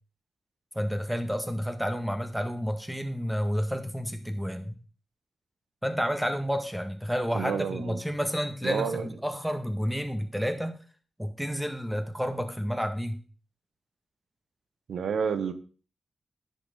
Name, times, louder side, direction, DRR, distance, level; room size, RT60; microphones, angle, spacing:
voice 1, 0.7-4.8 5.8-10.8 11.2-13.2, equal, 5° right, 7 dB, 1.7 m, -30 dB
voice 2, 7.3-8.0 8.6-9.1 14.9-15.5, right 6 dB, 85° right, 11 dB, 0.9 m, -29 dB
9.9 x 6.6 x 3.9 m, 0.38 s
cardioid pair, 45°, 0 cm